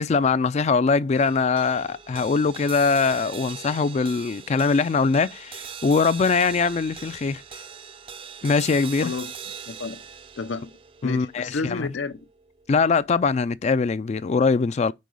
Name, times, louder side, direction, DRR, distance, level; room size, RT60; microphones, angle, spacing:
voice 1, 0.0-7.4 8.4-9.1 11.0-11.9 12.7-14.9, left 4 dB, 40° left, 0.3 m, -22 dB
sound 1, 1.2-13.7, right 7 dB, 30° right, 0.4 m, -41 dB
voice 2, 9.0-9.3 9.7-10.0 10.4-10.7 11.0-12.3, left 4 dB, 85° left, 0.6 m, -31 dB
5.3 x 4.6 x 6.2 m
head